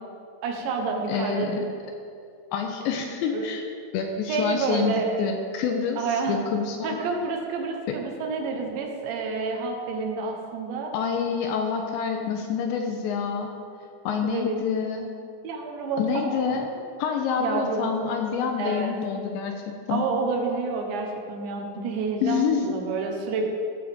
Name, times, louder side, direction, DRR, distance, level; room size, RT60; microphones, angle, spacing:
voice 1, 0.4-1.6 3.3-3.5 4.3-5.2 6.0-6.4 6.8-10.9 14.2-14.6 15.4-16.7 17.4-18.2 18.6-18.9 19.9-23.4, right 4 dB, 70° right, 2 dB, 3.3 m, -29 dB
voice 2, 1.1-1.6 2.5-3.6 3.9-7.0 7.9-8.0 10.9-13.5 14.1-15.1 16.0-16.7 17.0-19.6 19.9-20.1 22.2-22.8, left 6 dB, 80° left, 3 dB, 2.9 m, -27 dB
15.0 x 13.5 x 3.7 m, 2.4 s
omnidirectional pair, 5.7 m